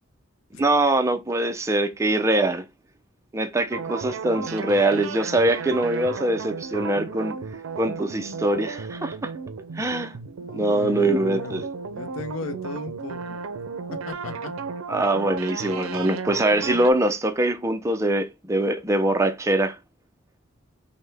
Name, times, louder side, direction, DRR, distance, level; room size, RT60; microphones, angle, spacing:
voice 1, 0.6-2.7 3.3-7.3 7.8-9.3 9.8-10.1 10.5-11.7 14.9-19.8, right 1 dB, 15° right, 0.4 m, -23 dB
sound 1, 3.7-16.9, right 5 dB, 90° right, 0.5 m, -34 dB
voice 2, 10.5-11.6 11.9-13.4 13.9-14.5, left 2 dB, 75° left, 0.7 m, -36 dB
5.4 x 2.1 x 3.3 m
head